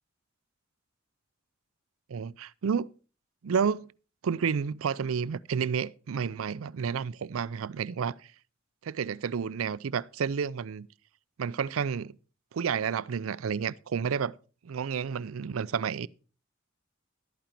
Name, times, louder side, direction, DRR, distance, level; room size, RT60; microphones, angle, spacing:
voice 1, 2.1-2.9 3.4-3.8 4.2-8.2 8.8-10.9 11.4-12.2 12.5-14.3 14.6-16.1, right 6 dB, 80° right, 0.4 m, -30 dB
12.0 x 9.0 x 4.4 m
head